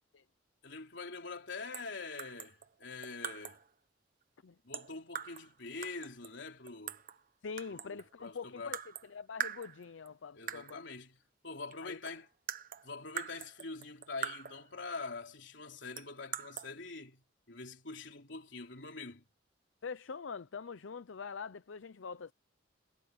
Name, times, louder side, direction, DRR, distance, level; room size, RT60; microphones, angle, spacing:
voice 1, 0.6-3.6 4.6-7.0 7.7-8.8 10.4-11.2 11.4-12.3 12.8-19.2, left 3 dB, 65° left, 3.8 m, -45 dB
sound 1, 1.7-1.9 2.2-3.7 4.7-5.5 5.8-7.2 7.6-8.1 8.7-9.1 9.4-10.1 10.5-10.8 11.7-11.8 12.1-14.7 16.0-16.7, right 8 dB, 50° right, 1.2 m, -42 dB
voice 2, 7.4-8.8 9.1-10.8 11.8-12.0 19.8-22.3, left 5 dB, 85° left, 0.6 m, -44 dB
head